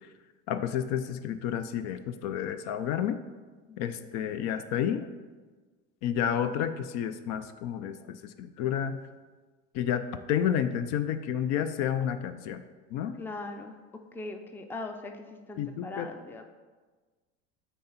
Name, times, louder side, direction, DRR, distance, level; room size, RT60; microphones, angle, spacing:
voice 1, 0.5-3.2 3.8-5.1 6.0-9.0 9.7-12.6 12.9-13.1 15.6-16.1, left 9 dB, 55° left, 10 dB, 0.5 m, -30 dB
voice 2, 3.7-4.1 13.2-13.8 14.1-16.4, left 2 dB, 5° left, 5 dB, 0.5 m, -40 dB
8.3 x 2.9 x 5.6 m, 1.3 s
supercardioid pair, 105°, 34 cm